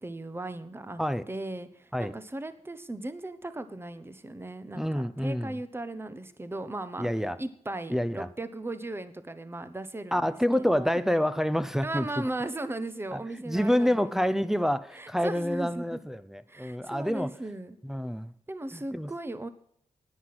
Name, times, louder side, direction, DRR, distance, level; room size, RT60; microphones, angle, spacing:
voice 1, 0.0-1.0 1.3-7.1 7.4-11.1 11.8-14.0 14.9-16.0 16.5-17.8 18.5-19.5, right 2 dB, 20° right, 1.1 m, -37 dB
voice 2, 4.7-5.6 7.0-7.4 7.9-8.3 10.1-12.1 13.1-13.2 13.5-17.3 17.8-18.3 18.7-19.1, equal, 5° right, 0.7 m, -27 dB
10.0 x 9.6 x 7.8 m
cardioid pair, 65°, 13 cm